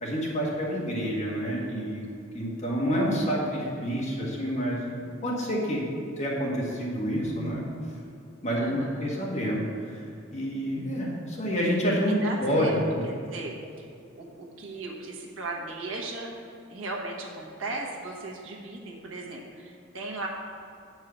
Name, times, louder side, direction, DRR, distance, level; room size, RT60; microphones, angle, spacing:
voice 1, 0.0-2.0 2.3-5.8 6.2-7.6 8.4-10.0 10.3-13.1, equal, 35° left, -4 dB, 1.6 m, -28 dB
voice 2, 8.6-9.1 12.2-12.8 13.0-13.5 14.2-16.3 16.7-20.3, right 2 dB, 75° right, -1 dB, 1.2 m, -37 dB
8.0 x 4.7 x 5.8 m, 2.6 s
head